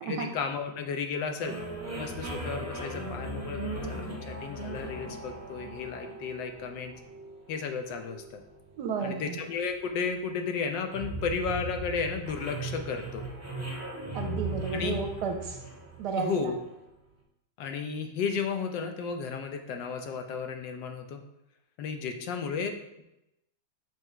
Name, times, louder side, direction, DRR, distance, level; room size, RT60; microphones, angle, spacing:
voice 1, 0.0-1.5 1.9-6.9 7.5-8.4 9.0-13.2 14.7-14.9 16.2-16.6 17.6-21.2 21.8-23.0, left 5 dB, 75° left, 5 dB, 1.3 m, -33 dB
sound 1, 1.4-16.8, right 2 dB, 15° right, 0.5 m, -39 dB
voice 2, 8.8-9.4 14.1-15.6 16.0-16.5, right 5 dB, 70° right, 4 dB, 1.1 m, -32 dB
5.9 x 3.7 x 4.3 m, 0.89 s
omnidirectional pair, 2.0 m